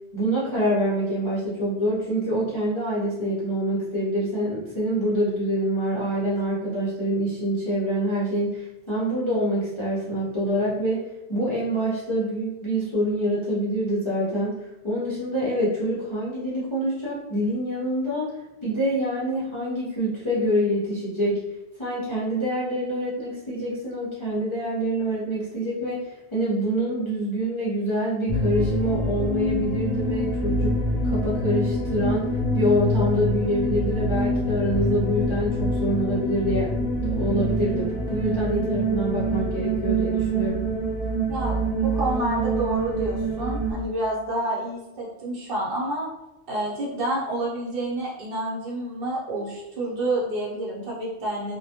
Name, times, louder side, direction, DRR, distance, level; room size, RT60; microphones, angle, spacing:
voice 1, 0.1-18.3 18.6-21.4 21.8-30.8 31.0-36.8 37.1-40.6, equal, 35° left, -9 dB, 0.5 m, -26 dB
sound 1, 28.3-43.7, right 1 dB, 70° left, 0.8 m, -25 dB
voice 2, 41.8-46.1 46.5-51.6, right 1 dB, 60° right, -5 dB, 0.9 m, -28 dB
2.1 x 2.1 x 2.7 m, 0.96 s
omnidirectional pair, 1.1 m